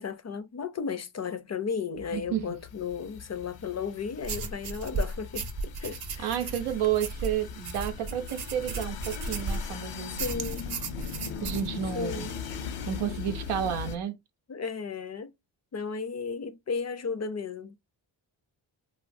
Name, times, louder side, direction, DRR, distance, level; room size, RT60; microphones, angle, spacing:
voice 1, 0.0-6.4 10.1-10.9 11.9-12.4 14.5-15.3 15.7-17.8, left 5 dB, 35° left, 0.4 m, -34 dB
sound 1, 2.0-14.0, left 7 dB, 80° left, 0.6 m, -40 dB
voice 2, 2.1-2.5 6.2-10.1 11.4-12.3 12.9-14.2, right 10 dB, 90° right, 0.6 m, -31 dB
sound 2, 4.2-9.8 10.2-11.7, right 3 dB, 50° right, 0.7 m, -35 dB
3.1 x 2.0 x 2.5 m
supercardioid pair, 45°, 50 cm